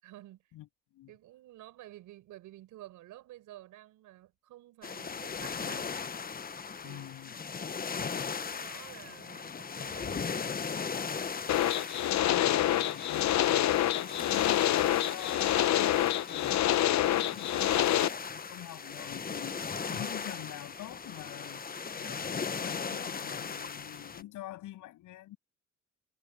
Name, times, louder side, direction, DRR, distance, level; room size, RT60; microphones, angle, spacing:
voice 1, 0.0-0.5 1.1-6.0 6.8-7.1 8.1-10.4, right 15 dB, 90° right, 5.4 m, -51 dB
sound 1, 4.8-24.2, left 6 dB, 30° left, 1.0 m, -38 dB
voice 2, 6.8-7.4 12.2-16.7 17.0-21.6 21.9-25.4, left 15 dB, 90° left, 7.9 m, -46 dB
sound 2, 11.5-18.1, left 12 dB, 65° left, 0.9 m, -27 dB
cardioid pair, 90°, 30 cm